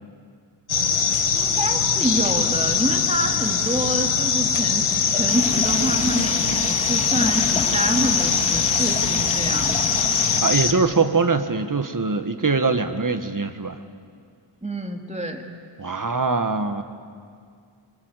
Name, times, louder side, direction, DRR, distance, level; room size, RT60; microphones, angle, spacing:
sound 1, 0.7-10.7, left 6 dB, 90° left, 1.5 m, -22 dB
voice 1, 1.3-10.1 14.6-15.4, right 1 dB, 15° right, 2 dB, 2.8 m, -27 dB
Stream, 5.3-10.4, left 1 dB, 15° left, 2.3 m, -30 dB
voice 2, 10.4-13.8 15.8-16.8, right 4 dB, 40° right, 8 dB, 1.6 m, -22 dB
26.0 x 24.5 x 8.3 m, 2.2 s
wide cardioid pair, 70°, 49 cm